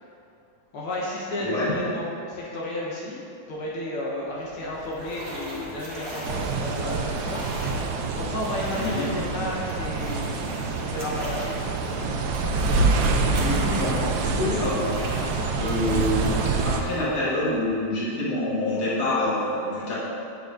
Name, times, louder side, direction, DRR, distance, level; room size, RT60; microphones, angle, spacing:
voice 1, 0.7-3.2 3.5-7.4 8.1-12.2 15.8-16.0, left 1 dB, 80° left, -5 dB, 1.9 m, -32 dB
voice 2, 1.4-1.7 8.8-9.1 13.4-13.9 14.2-15.0 15.6-16.2 16.6-19.9, left 1 dB, 45° left, -8 dB, 1.9 m, -26 dB
sound 1, 4.2-18.0, right 1 dB, 30° right, 1.2 m, -39 dB
sound 2, 6.2-16.8, right 3 dB, 75° right, 1.2 m, -26 dB
8.5 x 7.0 x 2.5 m, 2.6 s
omnidirectional pair, 2.4 m